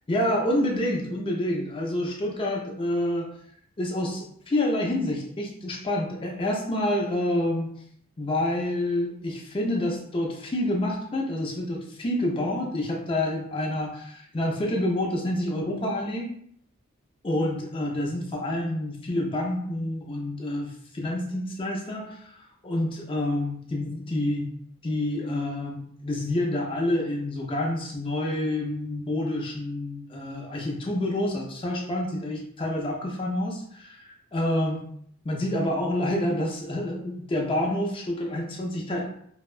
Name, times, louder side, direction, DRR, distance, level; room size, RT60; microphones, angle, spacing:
voice 1, 0.1-3.3 3.8-7.8 8.2-16.3 17.2-22.4 22.6-24.5 24.8-34.9 35.2-39.1, left 1 dB, 25° left, -1 dB, 0.4 m, -28 dB
2.7 x 2.1 x 2.3 m, 0.67 s
head